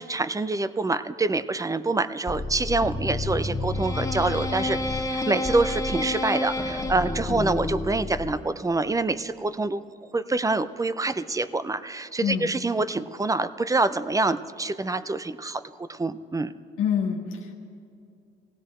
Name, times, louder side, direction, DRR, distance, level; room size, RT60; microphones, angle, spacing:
voice 1, 0.0-9.8 10.1-16.5, right 3 dB, 15° right, 14 dB, 0.5 m, -26 dB
sound 1, 2.3-8.5, left 2 dB, 15° left, 1.8 m, -29 dB
voice 2, 7.3-7.7 12.2-12.5 16.8-17.6, left 7 dB, 90° left, 0 dB, 1.4 m, -27 dB
18.0 x 16.5 x 4.4 m, 2.5 s
cardioid pair, 90°, 20 cm